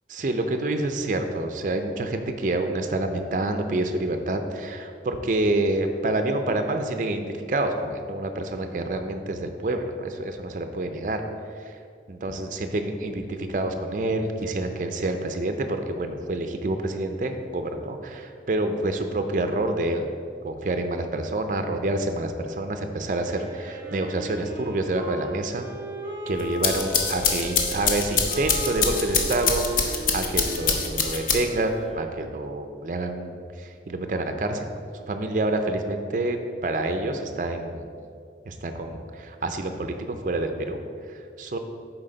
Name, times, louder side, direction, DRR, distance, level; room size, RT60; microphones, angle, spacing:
voice 1, 0.1-11.2 11.5-11.8 12.1-20.1 20.4-25.7 26.3-37.9 38.4-41.6, right 2 dB, 45° right, 6 dB, 0.4 m, -28 dB
Wind instrument woodwind instrument, 23.2-32.1, right 1 dB, 15° right, 1.6 m, -37 dB
sound 1, 26.4-31.7, left 5 dB, 50° left, 0.6 m, -25 dB
7.5 x 4.6 x 3.9 m, 2.3 s
head